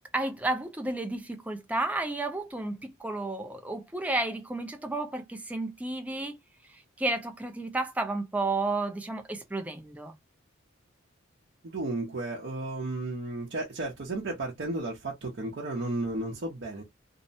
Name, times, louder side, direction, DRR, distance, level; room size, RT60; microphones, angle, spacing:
voice 1, 0.1-6.4 6.7-10.1, right 2 dB, 5° right, 0.4 m, -32 dB
voice 2, 11.6-16.8, right 2 dB, 55° right, 0.6 m, -33 dB
2.6 x 2.0 x 2.6 m
head